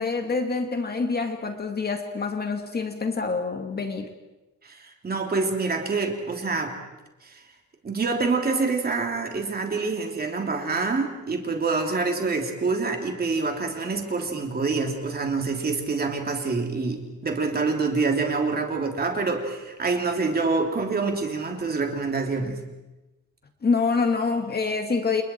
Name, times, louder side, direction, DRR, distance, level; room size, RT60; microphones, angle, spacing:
voice 1, 0.0-4.1 23.6-25.2, left 4 dB, 30° left, 5 dB, 2.2 m, -26 dB
voice 2, 4.6-6.7 7.2-7.4 7.8-22.6, right 4 dB, 30° right, 3 dB, 3.2 m, -26 dB
30.0 x 29.0 x 4.6 m, 1.0 s
wide cardioid pair, 175°, 30 cm